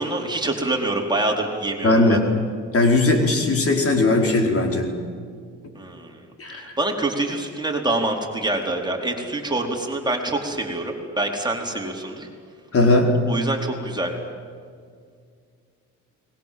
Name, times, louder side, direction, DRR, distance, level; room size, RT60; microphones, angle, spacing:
voice 1, 0.0-2.2 5.7-6.2 6.5-12.3 13.3-14.1, right 2 dB, 15° right, 1 dB, 4.5 m, -26 dB
voice 2, 1.8-2.2 2.7-4.9 6.4-6.7 12.7-13.1, left 2 dB, 50° left, 3 dB, 4.7 m, -18 dB
30.0 x 21.5 x 7.8 m, 2.1 s
cardioid pair, 90°, 30 cm